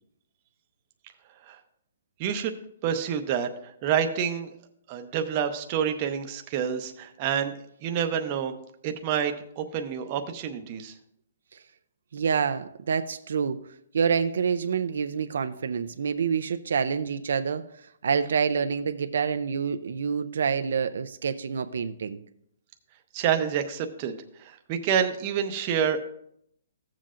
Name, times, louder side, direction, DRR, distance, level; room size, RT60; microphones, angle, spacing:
voice 1, 2.2-2.5 2.8-4.5 4.9-8.5 8.8-10.9 23.1-24.1 24.4-26.0, right 8 dB, 25° right, 6 dB, 0.7 m, -28 dB
voice 2, 12.1-13.6 13.9-17.6 18.0-22.2, right 6 dB, 70° right, 10 dB, 0.5 m, -27 dB
14.5 x 7.4 x 2.5 m, 0.72 s
hypercardioid pair, 170°, 0 cm